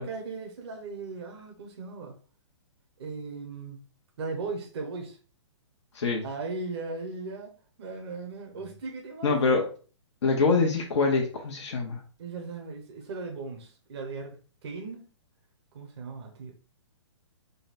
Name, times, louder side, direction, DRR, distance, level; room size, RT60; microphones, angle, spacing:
voice 1, 0.0-2.2 3.0-3.8 4.2-5.2 6.2-7.5 7.8-9.6 12.2-15.1 15.7-16.5, right 3 dB, 60° right, 2 dB, 1.0 m, -37 dB
voice 2, 5.9-6.2 9.2-9.6 10.2-12.0, left 4 dB, 70° left, 0 dB, 1.0 m, -24 dB
3.9 x 2.2 x 4.1 m, 0.39 s
hypercardioid pair, 145°, 15 cm